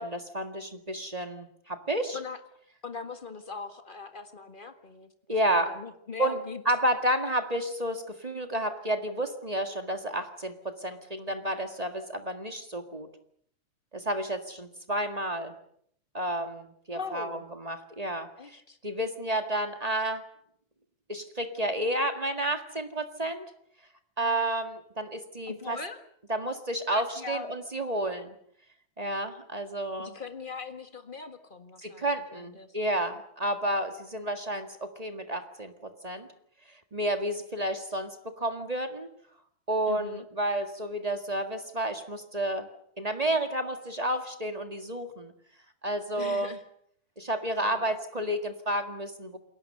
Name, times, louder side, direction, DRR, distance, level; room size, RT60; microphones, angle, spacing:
voice 1, 0.0-2.2 5.3-5.7 6.2-6.4 6.6-13.1 13.9-15.5 16.1-18.6 18.8-20.3 21.1-23.5 24.2-25.8 26.3-28.3 29.0-30.1 31.8-36.3 36.7-39.1 39.7-42.7 43.0-45.3 45.8-46.5 47.2-49.4, right 1 dB, 20° right, 7 dB, 1.0 m, -31 dB
voice 2, 2.8-5.1 5.4-6.6 7.2-7.3 16.9-17.4 18.4-18.8 25.5-26.0 26.9-27.5 30.0-32.8 39.9-40.3 46.1-46.6 47.6-48.0, left 5 dB, 30° left, 8 dB, 0.9 m, -41 dB
29.0 x 22.0 x 6.8 m, 0.68 s
omnidirectional pair, 3.5 m